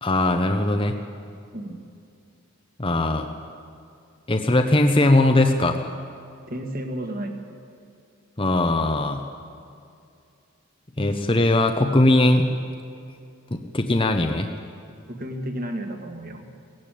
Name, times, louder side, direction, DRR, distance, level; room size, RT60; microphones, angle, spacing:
voice 1, 0.0-0.9 2.8-3.3 4.3-5.9 8.4-9.2 11.0-12.5 13.5-14.5, left 2 dB, 25° left, 5 dB, 0.9 m, -20 dB
voice 2, 6.5-7.4 15.1-16.5, right 1 dB, 40° right, 4 dB, 2.0 m, -32 dB
18.5 x 15.5 x 9.2 m, 2.4 s
head